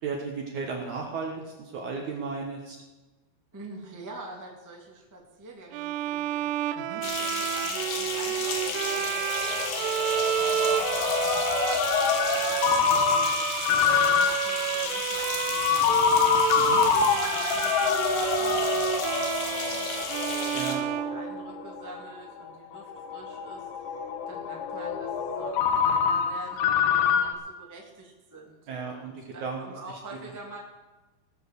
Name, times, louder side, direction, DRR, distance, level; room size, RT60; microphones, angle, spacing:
voice 1, 0.0-2.8 6.8-7.0 16.6-16.8 20.5-20.8 28.7-29.1 29.4-29.6, right 5 dB, 60° right, 0 dB, 2.1 m, -34 dB
voice 2, 3.5-9.7 10.3-13.4 14.1-20.6 21.0-30.6, right 2 dB, 10° right, -1 dB, 1.1 m, -46 dB
Bowed string instrument, 5.7-21.8, right 13 dB, 85° right, 2.7 m, -30 dB
sound 1, 7.0-20.7, left 5 dB, 90° left, 3.8 m, -34 dB
Ringtone, 7.6-27.3, left 7 dB, 70° left, 2.9 m, -27 dB
18.0 x 7.7 x 6.6 m, 1.2 s
omnidirectional pair, 4.7 m